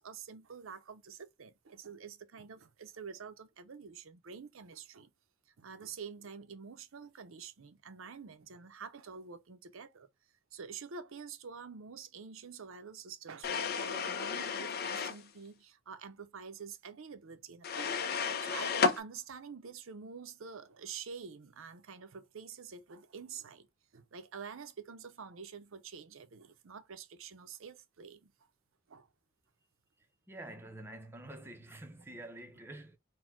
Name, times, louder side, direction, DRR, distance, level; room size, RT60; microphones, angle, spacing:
voice 1, 0.0-5.1 5.6-10.1 10.5-18.0 18.4-23.7 23.9-28.5 28.9-29.1, right 6 dB, 75° right, 0.6 m, -47 dB
sound 1, 13.4-15.2 17.6-19.0, left 5 dB, 50° left, 0.7 m, -32 dB
voice 2, 30.3-33.0, right 1 dB, 10° right, 0.7 m, -47 dB
4.3 x 2.2 x 4.3 m
head